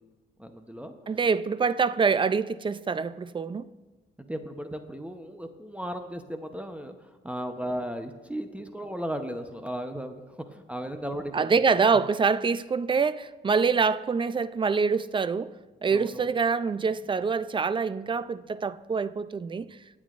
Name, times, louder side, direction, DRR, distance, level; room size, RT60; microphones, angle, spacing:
voice 1, 0.4-0.9 4.2-6.9 7.2-10.2 10.5-11.5 15.9-16.3, equal, 5° right, 0.8 m, -35 dB
voice 2, 1.1-3.7 11.3-15.5 15.8-19.8, right 5 dB, 25° right, 0.4 m, -25 dB
25.5 x 8.5 x 2.5 m
cardioid pair, 90°, 20 cm